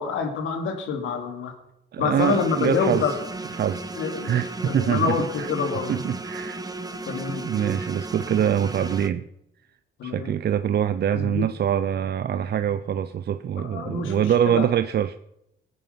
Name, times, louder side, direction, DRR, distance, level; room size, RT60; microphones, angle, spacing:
voice 1, 0.0-1.5 2.0-3.2 4.0-4.3 4.6-6.0 7.1-7.4 10.0-10.3 11.1-11.5 13.6-14.7, left 5 dB, 80° left, 3.0 m, -27 dB
voice 2, 1.9-3.1 3.5-3.9 4.2-5.5 5.9-6.6 7.3-9.2 10.0-15.2, right 9 dB, 55° right, 0.7 m, -24 dB
sound 1, 2.2-9.1, right 2 dB, 20° right, 1.2 m, -35 dB
19.5 x 9.5 x 5.9 m
cardioid pair, 90°, 20 cm